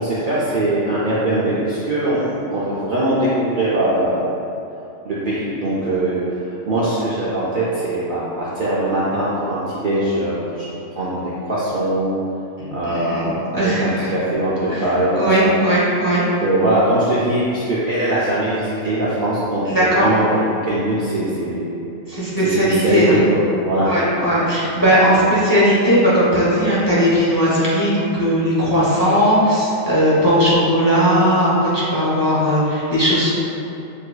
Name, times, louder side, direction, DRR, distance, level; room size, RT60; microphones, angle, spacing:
voice 1, 0.0-4.3 5.0-6.2 6.5-10.6 11.0-12.1 12.7-15.5 16.4-21.7 22.4-23.9 25.1-25.3, right 1 dB, 55° right, -9 dB, 0.6 m, -21 dB
voice 2, 12.6-14.1 14.7-14.8 15.1-16.2 19.6-20.1 22.1-23.1 23.8-33.3, equal, 20° left, -9 dB, 0.7 m, -17 dB
6.4 x 2.7 x 2.2 m, 2.8 s
omnidirectional pair, 1.3 m